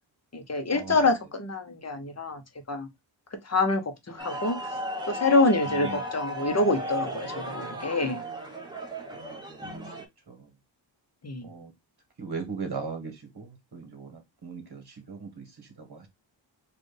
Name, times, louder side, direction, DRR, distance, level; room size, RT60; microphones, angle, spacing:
voice 1, 0.3-2.4 2.7-2.9 3.5-4.6 5.1-8.2 11.2-11.5, left 2 dB, 35° left, 0.8 m, -26 dB
sound 1, 4.2-10.0, equal, 10° right, 1.0 m, -35 dB
voice 2, 5.6-6.0 9.1-9.9 10.3-10.5 11.4-11.7 12.2-16.1, right 4 dB, 55° right, 1.4 m, -39 dB
4.2 x 2.4 x 3.2 m
wide cardioid pair, 125°, 46 cm